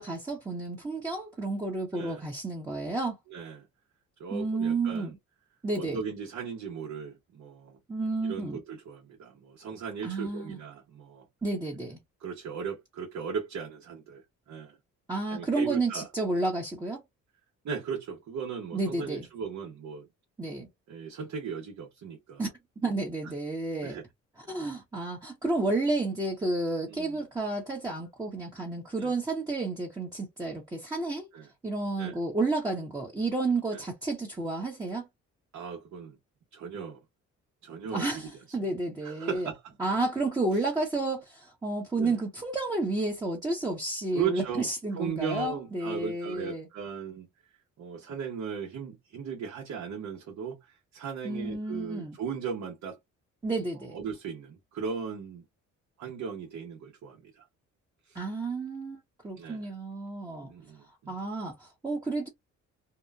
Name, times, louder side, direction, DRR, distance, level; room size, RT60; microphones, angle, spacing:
voice 1, 0.0-3.2 4.3-5.1 5.6-6.0 7.9-8.6 10.0-10.6 11.4-12.0 15.1-17.0 18.7-19.3 20.4-20.7 22.4-22.5 22.8-24.0 24.5-31.3 31.6-35.1 37.9-39.5 39.8-46.7 51.2-52.2 53.4-54.0 58.1-60.5 61.1-62.3, right 2 dB, 15° right, 0.9 m, -31 dB
voice 2, 1.9-2.2 3.3-3.7 4.2-5.1 5.8-7.8 8.2-11.3 12.2-14.8 15.3-16.1 17.6-20.1 20.9-22.5 23.8-24.0 26.9-27.2 29.0-29.1 31.3-31.5 32.0-32.2 33.7-33.8 35.5-36.2 36.5-37.0 37.6-38.6 39.0-39.6 42.0-42.1 44.1-47.3 47.8-53.0 53.9-55.4 56.0-57.5 58.1-58.2 59.3-59.7 60.3-61.2, right 6 dB, 65° right, 1.0 m, -37 dB
2.8 x 2.1 x 2.3 m
cardioid pair, 90°, 30 cm